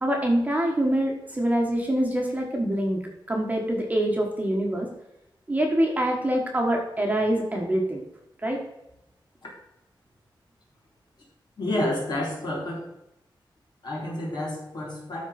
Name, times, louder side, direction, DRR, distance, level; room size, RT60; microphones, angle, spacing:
voice 1, 0.0-3.0 3.3-4.9 5.5-8.0 8.4-8.6, right 1 dB, 20° right, 0 dB, 1.4 m, -25 dB
voice 2, 11.6-12.9 13.8-15.3, left 1 dB, 55° left, -4 dB, 3.6 m, -29 dB
13.0 x 4.6 x 4.3 m, 0.86 s
wide cardioid pair, 175°, 9 cm